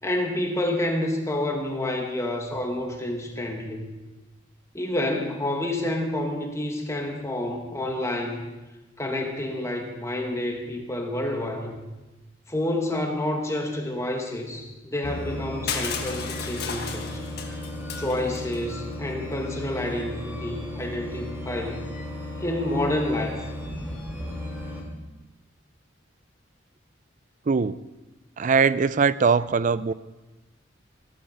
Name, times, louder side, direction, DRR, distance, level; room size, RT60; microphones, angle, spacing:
voice 1, 0.0-3.9 4.7-8.4 9.0-11.8 12.5-17.2 18.0-21.9 22.4-23.4, left 1 dB, 15° left, 2 dB, 1.7 m, -29 dB
sound 1, 15.0-24.8, left 1 dB, 10° right, 2.9 m, -35 dB
Crushing, 15.7-18.6, left 6 dB, 55° left, 1.7 m, -34 dB
voice 2, 27.5-27.8 28.4-29.9, right 5 dB, 40° right, 17 dB, 0.4 m, -21 dB
15.5 x 13.5 x 5.6 m, 1.1 s
head